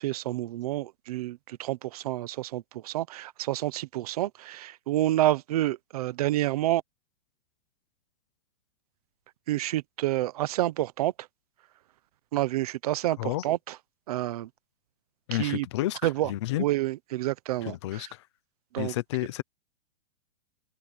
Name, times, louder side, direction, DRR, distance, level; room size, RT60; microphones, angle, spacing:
voice 1, 0.0-6.8 9.5-11.1 12.3-13.7 14.1-14.5 15.3-15.7 16.0-16.3 16.6-18.1 18.7-18.9, right 15 dB, 35° right, 1.0 m, -28 dB
voice 2, 13.2-13.5 15.3-16.7 17.6-18.3 18.8-19.4, left 16 dB, 25° left, 0.7 m, -31 dB
hypercardioid pair, 175°, 35 cm